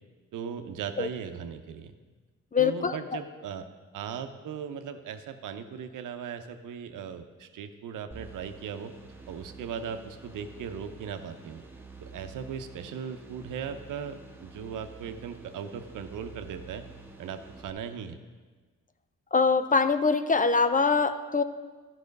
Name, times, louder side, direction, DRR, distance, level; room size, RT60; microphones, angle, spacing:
voice 1, 0.3-1.9 2.6-3.7 3.9-8.9 9.3-11.6 12.0-16.9 17.2-18.2, right 7 dB, 80° right, 8 dB, 0.8 m, -38 dB
voice 2, 2.5-3.0 19.3-21.4, left 4 dB, 25° left, 11 dB, 0.5 m, -23 dB
sound 1, 8.1-17.7, right 4 dB, 5° right, 1.8 m, -48 dB
12.0 x 5.8 x 5.2 m, 1.4 s
cardioid pair, 65°, 31 cm